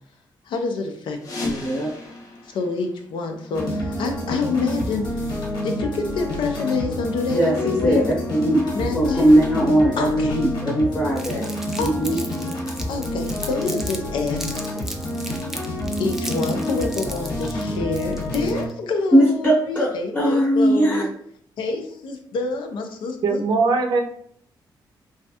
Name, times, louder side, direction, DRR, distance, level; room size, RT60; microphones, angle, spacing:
voice 1, 0.5-1.7 2.4-8.0 8.7-9.3 10.0-10.4 11.8-12.3 12.9-14.8 16.0-21.1 21.6-23.4, left 4 dB, 85° left, 5 dB, 0.5 m, -27 dB
sound 1, 1.2-3.8, left 1 dB, 50° left, 0.7 m, -35 dB
sound 2, 3.5-18.7, left 1 dB, 65° left, 1.0 m, -28 dB
voice 2, 7.3-8.6 8.9-11.5 11.8-12.2 19.1-21.0, right 1 dB, 20° left, -4 dB, 0.8 m, -19 dB
Crumpling crinkling, 11.2-14.0 14.3-18.7, right 1 dB, 5° right, 0.4 m, -35 dB
voice 3, 23.2-24.0, right 4 dB, 60° right, 4 dB, 0.5 m, -20 dB
3.1 x 2.3 x 2.7 m, 0.63 s
cardioid pair, 115°, 8 cm